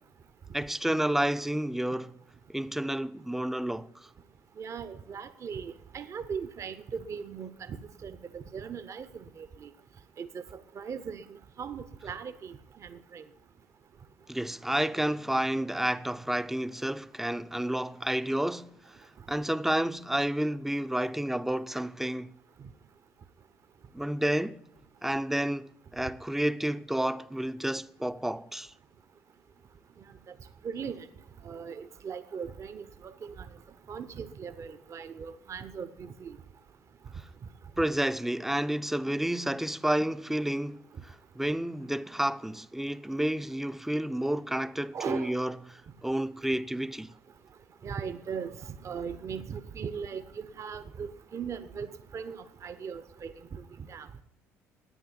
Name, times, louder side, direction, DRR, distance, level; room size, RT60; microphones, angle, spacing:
voice 1, 0.5-2.2 2.5-4.1 14.3-22.3 23.9-24.6 25.0-28.7 37.8-45.5 46.0-47.1, right 1 dB, 5° right, 0.6 m, -30 dB
voice 2, 4.6-9.7 10.2-13.2 30.6-31.1 31.4-33.5 33.9-36.4 44.9-45.3 47.8-54.1, right 6 dB, 40° right, 0.8 m, -39 dB
11.0 x 9.4 x 9.9 m
figure-of-eight pair, 55°, 7 cm